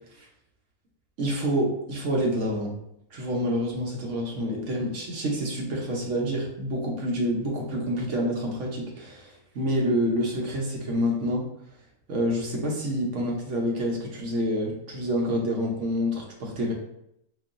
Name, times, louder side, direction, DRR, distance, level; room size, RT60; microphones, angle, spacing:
voice 1, 1.2-2.7 3.1-11.4 12.1-16.7, equal, 60° right, -1 dB, 1.0 m, -27 dB
3.9 x 2.8 x 2.5 m, 0.77 s
omnidirectional pair, 1.6 m